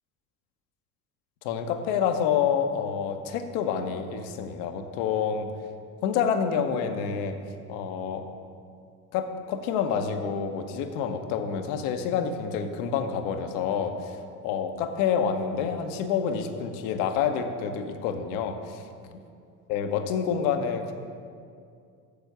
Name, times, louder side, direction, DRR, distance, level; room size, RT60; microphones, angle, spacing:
voice 1, 1.4-5.5 6.0-7.4 7.7-8.3 9.1-18.8 19.7-20.9, left 7 dB, 80° left, 6 dB, 0.9 m, -28 dB
7.1 x 6.9 x 6.6 m, 2.4 s
hypercardioid pair, 75°, 43 cm